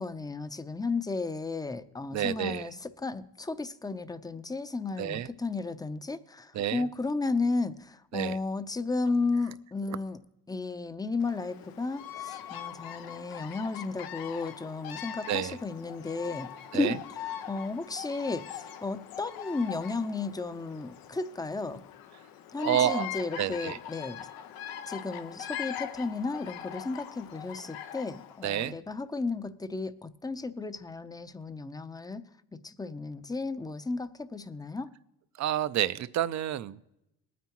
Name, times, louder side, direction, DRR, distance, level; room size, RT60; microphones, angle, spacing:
voice 1, 0.0-10.2 10.5-21.8 22.5-24.3 24.9-32.2 32.6-34.9, left 3 dB, 10° left, 0.6 m, -34 dB
voice 2, 2.1-2.7 5.0-5.3 6.5-6.9 8.1-8.4 15.3-15.6 16.7-17.0 22.6-23.1 23.4-23.8 28.4-28.8 35.4-36.8, right 11 dB, 50° right, 0.6 m, -29 dB
Bird vocalization bird call bird song, 11.2-28.5, left 10 dB, 85° left, 0.9 m, -42 dB
20.0 x 9.3 x 3.0 m
cardioid pair, 90°, 35 cm